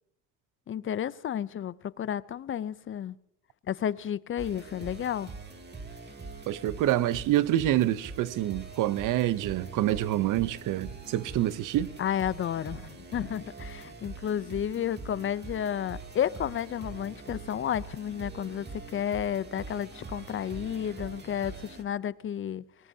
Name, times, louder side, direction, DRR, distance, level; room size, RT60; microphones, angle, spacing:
voice 1, 0.7-3.2 3.7-5.3 12.0-22.6, left 9 dB, 40° left, 0.5 m, -32 dB
Synth Guitar Beat Music, 4.4-21.8, right 3 dB, 30° right, 2.6 m, -43 dB
voice 2, 6.5-11.9, right 13 dB, 75° right, 0.7 m, -27 dB
26.0 x 19.0 x 2.7 m
cardioid pair, 100°, 32 cm